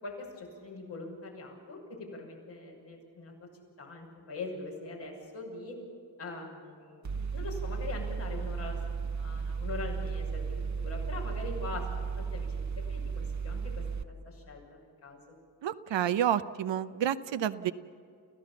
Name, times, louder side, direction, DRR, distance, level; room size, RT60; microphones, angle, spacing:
voice 1, 0.0-3.5 3.8-5.8 6.2-8.8 9.1-12.5 12.9-13.7 14.1-15.2, left 3 dB, 85° left, -2 dB, 6.5 m, -42 dB
Mechanical fan, 7.0-14.0, right 5 dB, 40° right, 1.0 m, -34 dB
voice 2, 15.6-17.7, right 10 dB, 85° right, 13 dB, 0.8 m, -29 dB
29.5 x 15.0 x 7.1 m, 2.5 s
cardioid pair, 55°, 43 cm